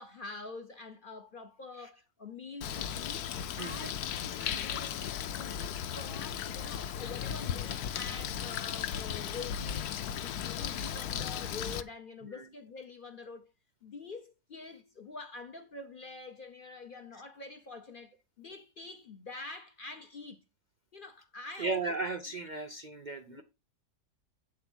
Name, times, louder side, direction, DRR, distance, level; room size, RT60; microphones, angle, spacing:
voice 1, 0.0-5.0 5.4-10.0 10.2-13.5 13.8-20.4 20.9-21.9 23.3-23.4, left 3 dB, 50° left, 0.6 m, -46 dB
Bird, 2.6-11.8, left 9 dB, 70° left, 1.1 m, -36 dB
voice 2, 3.3-3.9 4.4-4.7 12.3-12.5 21.6-23.4, right 3 dB, 85° right, 0.4 m, -37 dB
8.5 x 3.9 x 6.1 m
omnidirectional pair, 1.8 m